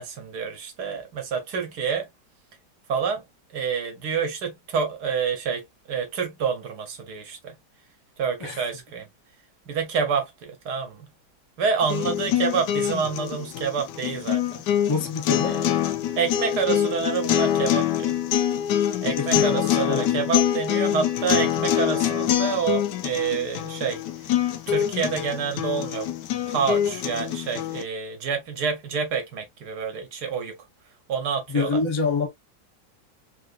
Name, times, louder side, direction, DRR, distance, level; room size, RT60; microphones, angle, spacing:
voice 1, 0.0-2.1 2.9-3.2 3.5-7.6 8.2-9.1 9.7-11.1 11.6-14.6 15.4-15.7 16.2-18.2 19.0-24.3 24.7-26.1 26.5-30.5 31.1-31.8, right 6 dB, 70° right, 1.5 m, -28 dB
sound 1, 11.8-27.8, left 11 dB, 80° left, 1.2 m, -25 dB
voice 2, 14.9-15.6 19.2-20.2 31.5-32.3, left 4 dB, 30° left, 0.5 m, -26 dB
3.6 x 2.5 x 2.4 m
omnidirectional pair, 1.9 m